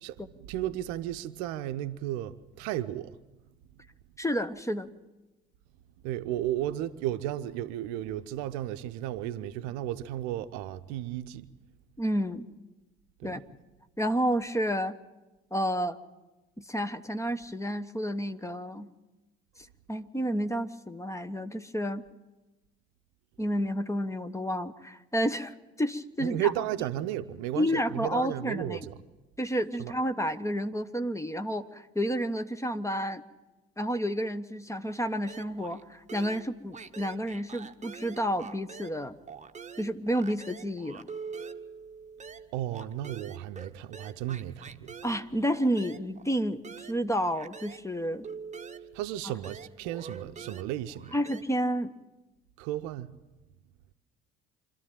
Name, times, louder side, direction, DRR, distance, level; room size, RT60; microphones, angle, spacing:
voice 1, 0.0-3.2 6.0-11.5 13.2-13.3 26.2-29.0 29.8-29.9 42.5-44.9 48.9-51.1 52.6-53.1, right 13 dB, 60° right, 0.8 m, -34 dB
voice 2, 4.2-4.9 12.0-12.5 13.2-13.4 14.0-15.0 15.5-16.0 16.6-18.9 19.9-22.0 23.4-26.5 27.6-28.9 29.4-33.2 33.8-39.1 39.8-41.1 45.0-48.3 49.2-49.3 51.1-52.0, equal, 10° left, 1.1 m, -30 dB
sound 1, 35.3-35.8 36.1-39.0 39.3-47.9 48.2-51.4, right 6 dB, 20° right, 1.1 m, -45 dB
25.5 x 13.0 x 9.0 m
figure-of-eight pair, 50°, 32 cm